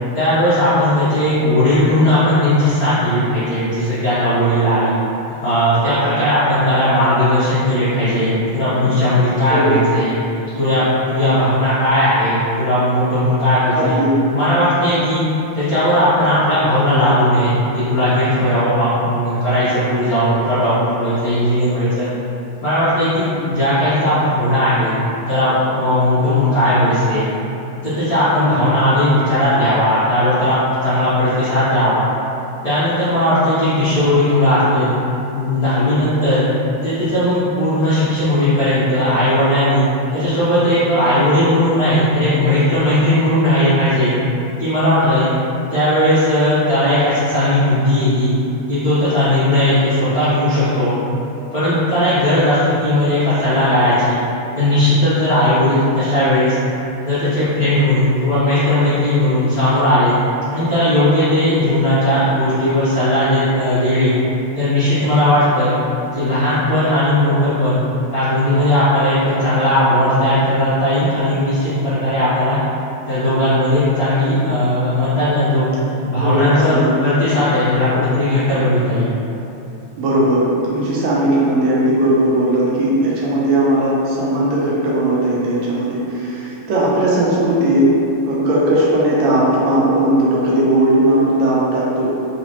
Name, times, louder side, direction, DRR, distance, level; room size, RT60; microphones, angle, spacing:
voice 1, 0.1-4.9 5.4-10.1 10.5-13.9 14.3-15.3 15.5-22.1 22.6-24.9 25.3-27.3 27.8-32.0 32.6-34.9 35.3-36.5 36.8-44.1 44.6-45.3 45.7-48.3 48.7-51.0 51.5-54.1 54.5-56.6 57.0-60.1 60.5-64.1 64.5-65.8 66.1-67.8 68.1-72.6 73.1-75.6 76.0-79.1, left 1 dB, 80° left, -14 dB, 0.8 m, -16 dB
voice 2, 13.7-14.1 23.5-23.6 26.3-26.4 28.4-28.5 76.2-76.9 80.0-87.9 88.2-92.1, right 1 dB, 75° right, -6 dB, 1.8 m, -17 dB
4.2 x 4.0 x 2.9 m, 2.8 s
omnidirectional pair, 3.4 m